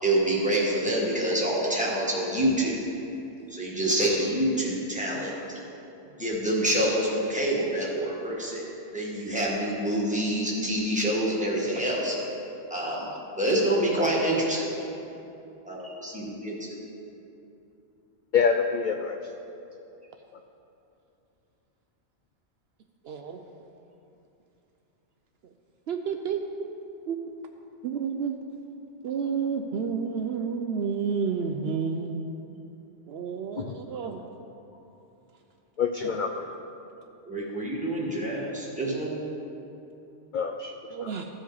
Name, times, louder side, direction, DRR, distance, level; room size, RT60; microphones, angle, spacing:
voice 1, 0.0-2.9 3.5-5.6 6.2-8.6 8.9-12.1 12.7-13.1 13.4-14.9 15.6-16.8 37.2-39.2, right 1 dB, 5° right, -5 dB, 1.5 m, -27 dB
voice 2, 18.3-19.2 20.3-20.4 33.6-33.7 35.8-36.6 40.3-40.7 41.0-41.1, left 6 dB, 60° left, 4 dB, 0.5 m, -26 dB
voice 3, 23.0-23.4 25.9-26.7 27.1-28.3 29.0-32.2 33.1-34.2 36.0-36.2 40.9-41.3, right 6 dB, 65° right, 4 dB, 0.7 m, -31 dB
15.0 x 5.1 x 4.0 m, 2.8 s
omnidirectional pair, 1.2 m